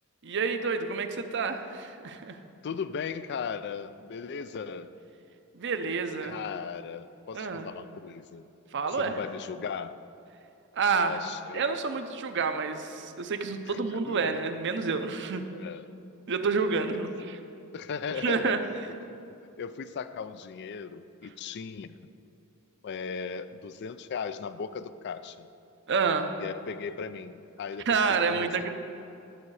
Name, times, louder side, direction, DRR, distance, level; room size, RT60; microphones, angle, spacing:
voice 1, 0.2-2.4 5.5-6.4 7.3-7.7 8.7-9.2 10.7-11.2 11.5-15.4 16.3-17.4 18.2-18.6 25.9-26.3 27.9-28.7, right 5 dB, 55° right, 8 dB, 0.7 m, -28 dB
voice 2, 2.6-4.9 6.2-8.4 8.9-9.9 11.0-11.8 13.7-14.3 15.5-15.8 17.0-17.1 17.7-18.6 18.9-19.2 19.6-22.1 22.8-25.5 26.4-28.7, left 6 dB, 55° left, 13 dB, 0.4 m, -37 dB
12.0 x 7.5 x 4.8 m, 2.6 s
head